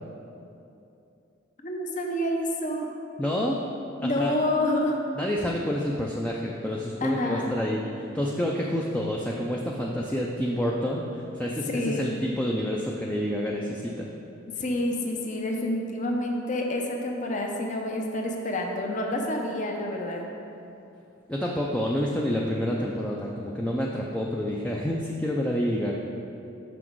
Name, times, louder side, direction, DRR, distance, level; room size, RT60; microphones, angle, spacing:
voice 1, 1.6-2.9 4.0-5.0 7.0-7.5 11.7-12.1 14.6-20.3, left 1 dB, 40° left, 1 dB, 0.7 m, -28 dB
voice 2, 3.2-3.6 4.0-4.3 5.2-14.1 21.3-26.0, equal, 5° left, -2 dB, 0.4 m, -28 dB
6.2 x 6.1 x 4.6 m, 2.7 s
head